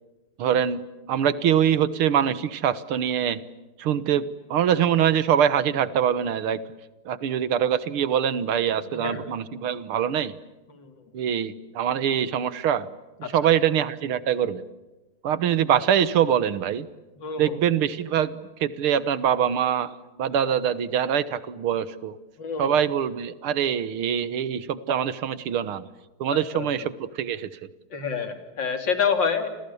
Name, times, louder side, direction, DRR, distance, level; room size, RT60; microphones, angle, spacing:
voice 1, 0.4-0.8 1.1-3.4 3.8-6.6 7.1-10.3 11.1-12.9 13.3-14.6 15.2-16.9 17.4-19.9 20.2-22.2 22.6-25.9 26.2-27.5, right 9 dB, 75° right, 15 dB, 2.1 m, -24 dB
voice 2, 8.9-9.3 10.7-10.9 13.2-13.5 17.2-17.6 22.4-22.8 26.3-26.9 27.9-29.5, left 6 dB, 55° left, 7 dB, 3.6 m, -28 dB
30.0 x 27.0 x 7.1 m, 1.1 s
omnidirectional pair, 2.4 m